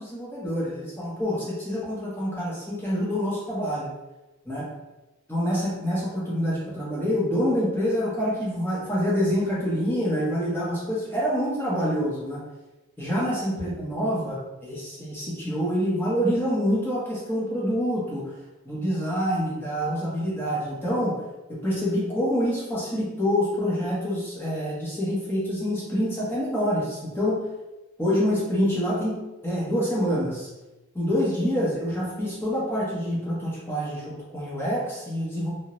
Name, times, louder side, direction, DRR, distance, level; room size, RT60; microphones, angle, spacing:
voice 1, 0.0-3.9 4.4-4.7 5.3-12.4 13.0-18.3 18.6-21.2 21.5-27.4 28.0-30.5 30.9-35.5, equal, 10° left, -6 dB, 0.7 m, -26 dB
2.5 x 2.1 x 2.9 m, 1.0 s
head